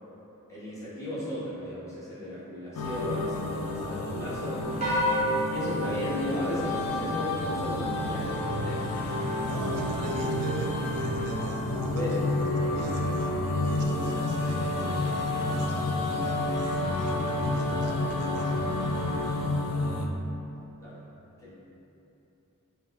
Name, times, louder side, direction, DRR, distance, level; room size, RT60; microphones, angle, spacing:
voice 1, 0.5-5.0 5.5-8.8 9.4-9.6 11.9-12.1 20.8-21.0 21.4-21.5, left 1 dB, 15° left, -11 dB, 0.7 m, -35 dB
sound 1, 2.8-20.1, left 2 dB, 85° left, 0.3 m, -30 dB
sound 2, 4.8-7.3, equal, 30° right, 0.6 m, -30 dB
sound 3, 7.4-12.6, right 2 dB, 50° left, 0.9 m, -39 dB
voice 2, 9.4-18.7, right 2 dB, 75° right, 0 dB, 0.3 m, -39 dB
2.2 x 2.1 x 3.7 m, 3.0 s
head